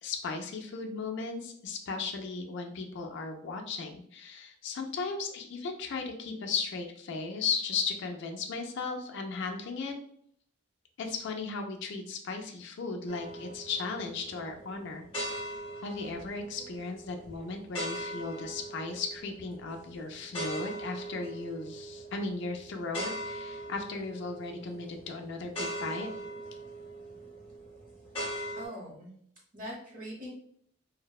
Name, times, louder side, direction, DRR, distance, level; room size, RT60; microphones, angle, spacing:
voice 1, 0.0-9.9 11.0-15.0 15.8-26.1, left 4 dB, 55° left, 3 dB, 0.3 m, -36 dB
sound 1, 13.1-28.7, right 1 dB, 25° left, 0.9 m, -41 dB
voice 2, 28.6-29.1 29.5-30.3, equal, 40° right, -3 dB, 0.8 m, -42 dB
2.6 x 2.0 x 2.3 m, 0.65 s
head